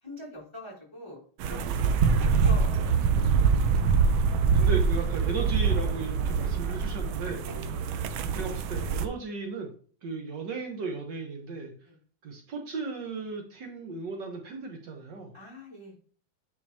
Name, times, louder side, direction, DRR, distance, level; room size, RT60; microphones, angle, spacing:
voice 1, 0.0-1.2 1.5-2.9 7.4-7.7 10.0-10.1 11.8-11.9 15.3-16.0, left 1 dB, 15° left, -6 dB, 3.4 m, -44 dB
sound 1, 1.4-9.1, right 5 dB, 90° right, 1.4 m, -25 dB
voice 2, 4.3-7.4 8.3-9.7 10.0-11.7 12.2-15.3, right 4 dB, 65° right, 2 dB, 1.6 m, -35 dB
9.4 x 4.5 x 2.8 m, 0.43 s
omnidirectional pair, 2.1 m